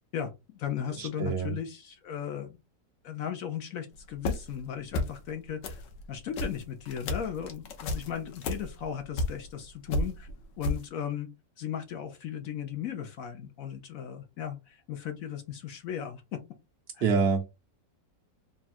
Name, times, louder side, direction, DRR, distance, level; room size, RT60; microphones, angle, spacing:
voice 1, 0.1-2.6 3.0-10.3 10.6-11.3 11.6-16.4 16.9-17.1, left 9 dB, 65° left, 0.9 m, -36 dB
voice 2, 1.0-1.6 17.0-17.5, right 5 dB, 55° right, 0.7 m, -26 dB
sound 1, 4.0-4.6 4.9-5.3 5.6-9.6 9.9-10.8, left 2 dB, 80° left, 1.4 m, -33 dB
3.6 x 2.3 x 4.1 m
omnidirectional pair, 1.9 m